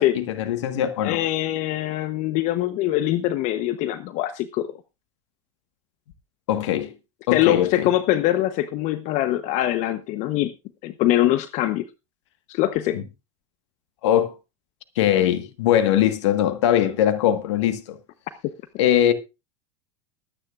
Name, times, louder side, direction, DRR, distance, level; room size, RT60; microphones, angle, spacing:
voice 1, 0.0-1.2 6.5-6.9 7.3-7.9 12.9-13.0 14.0-14.3 14.9-18.0 18.8-19.1, left 11 dB, 70° left, 1.6 m, -21 dB
voice 2, 1.0-4.7 7.3-10.5 10.8-11.8 12.5-13.0, left 14 dB, 50° left, 1.0 m, -23 dB
22.0 x 9.7 x 2.5 m
hypercardioid pair, 95°, 15 cm